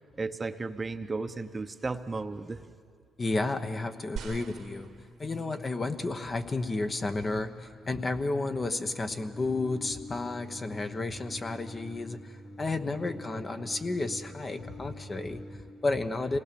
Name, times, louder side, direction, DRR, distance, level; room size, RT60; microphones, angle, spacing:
voice 1, 0.2-2.6, right 3 dB, 25° right, 9 dB, 0.9 m, -34 dB
voice 2, 3.2-16.4, left 3 dB, 30° left, 8 dB, 1.1 m, -32 dB
sound 1, 4.2-5.7 6.4-6.5, right 7 dB, 75° right, 1.3 m, -42 dB
Singing, 9.1-15.6, left 1 dB, 60° left, 6.3 m, -46 dB
26.0 x 18.5 x 7.0 m, 2.1 s
cardioid pair, 90°, 0 cm